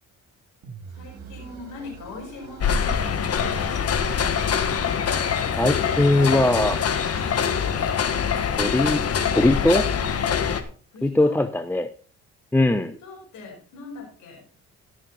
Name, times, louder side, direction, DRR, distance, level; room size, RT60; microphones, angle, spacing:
sound 1, 0.6-8.5, right 6 dB, 75° right, 2.8 m, -45 dB
voice 1, 0.9-3.4 10.9-11.5 12.7-14.5, left 3 dB, 85° left, -1 dB, 5.0 m, -41 dB
sound 2, 2.6-10.6, left 7 dB, 55° left, 1.5 m, -24 dB
voice 2, 5.5-6.8 8.6-9.0 9.3-9.9 11.0-11.9 12.5-12.9, left 1 dB, 5° left, 9 dB, 0.7 m, -20 dB
16.5 x 6.6 x 4.1 m, 0.39 s
cardioid pair, 90°, 30 cm